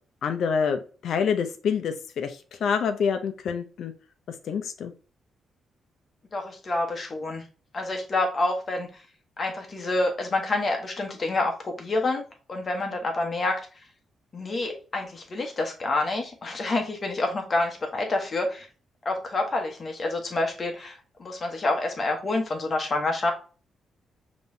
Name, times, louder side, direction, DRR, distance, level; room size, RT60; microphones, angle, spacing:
voice 1, 0.2-3.9 4.4-4.9, left 6 dB, 60° left, 7 dB, 0.5 m, -27 dB
voice 2, 6.3-7.4 7.7-8.9 9.4-12.2 12.5-13.6 14.3-18.7 19.0-23.3, left 2 dB, 30° left, 3 dB, 1.0 m, -28 dB
5.3 x 3.0 x 2.7 m, 0.36 s
cardioid pair, 160°, 0 cm